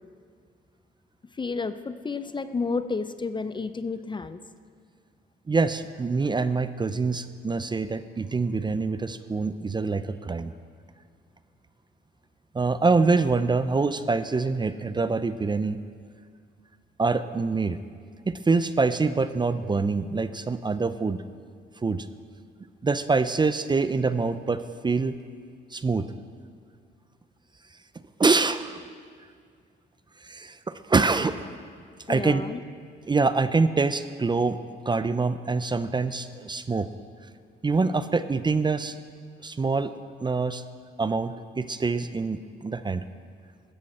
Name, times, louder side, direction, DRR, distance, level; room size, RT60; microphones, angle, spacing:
voice 1, 1.3-4.4 32.1-32.6, left 4 dB, 25° left, 12 dB, 0.5 m, -31 dB
voice 2, 5.5-10.5 12.5-15.8 17.0-17.8 18.3-21.2 21.8-22.1 22.8-25.1 25.7-26.1 28.2-28.8 30.2-30.6 30.9-31.3 32.1-32.4 33.1-34.6 34.9-36.9 37.6-39.0 39.4-39.9 40.2-40.6 41.0-43.0, right 4 dB, 20° right, 12 dB, 0.5 m, -25 dB
16.5 x 13.5 x 4.3 m, 2.1 s
cardioid pair, 90°, 20 cm